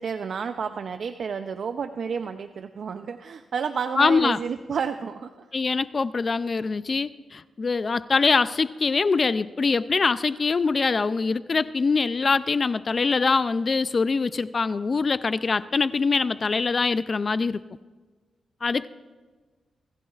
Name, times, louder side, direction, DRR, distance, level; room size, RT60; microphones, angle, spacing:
voice 1, 0.0-5.5, right 6 dB, 65° right, 8 dB, 0.5 m, -31 dB
voice 2, 4.0-4.4 5.5-17.6 18.6-18.9, left 4 dB, 40° left, 15 dB, 0.3 m, -23 dB
25.0 x 15.0 x 2.4 m, 1.4 s
cardioid pair, 95°, 0 cm